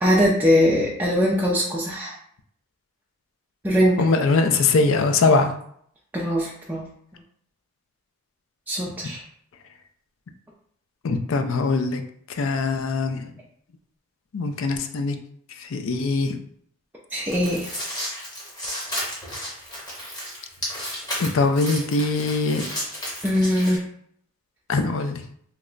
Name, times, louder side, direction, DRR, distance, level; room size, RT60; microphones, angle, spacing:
voice 1, 0.0-2.1 3.6-4.0 6.1-6.9 8.7-9.2 17.1-17.8 23.2-23.8, equal, 10° right, -5 dB, 0.4 m, -21 dB
voice 2, 4.0-5.5 11.0-12.0 12.4-13.3 14.3-15.2 15.7-16.4 21.2-22.7 24.7-25.2, left 3 dB, 60° left, 7 dB, 0.4 m, -22 dB
sound 1, 17.3-23.8, equal, 20° left, 1.0 m, -33 dB
2.9 x 2.1 x 3.7 m, 0.65 s
head